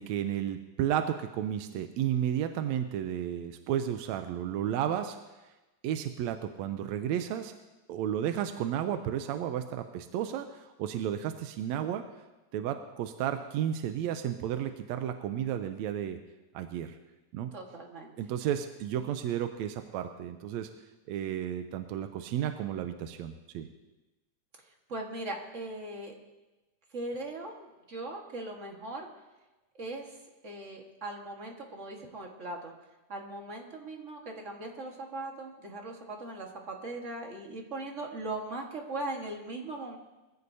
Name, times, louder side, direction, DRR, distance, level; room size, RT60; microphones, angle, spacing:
voice 1, 0.0-5.2 5.8-7.5 7.9-12.0 12.5-16.2 16.5-17.0 17.3-17.5 18.2-20.7 21.1-23.7, right 10 dB, 80° right, 8 dB, 1.8 m, -32 dB
voice 2, 17.5-18.1 24.9-26.1 26.9-29.1 29.7-30.2 30.4-32.7 33.1-40.0, right 2 dB, 35° right, 1 dB, 1.3 m, -39 dB
22.0 x 15.0 x 2.8 m, 1.1 s
omnidirectional pair, 3.3 m